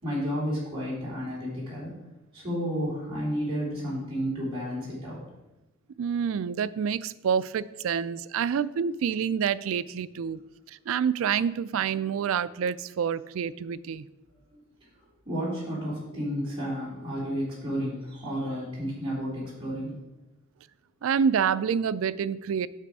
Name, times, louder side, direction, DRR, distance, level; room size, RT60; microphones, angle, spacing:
voice 1, 0.0-1.9 2.3-5.2 14.5-14.6 15.2-19.9, equal, 25° right, -8 dB, 3.3 m, -31 dB
voice 2, 6.0-10.4 10.7-14.1 21.0-22.7, right 7 dB, 75° right, 16 dB, 0.3 m, -27 dB
8.3 x 6.8 x 4.7 m, 1.0 s
head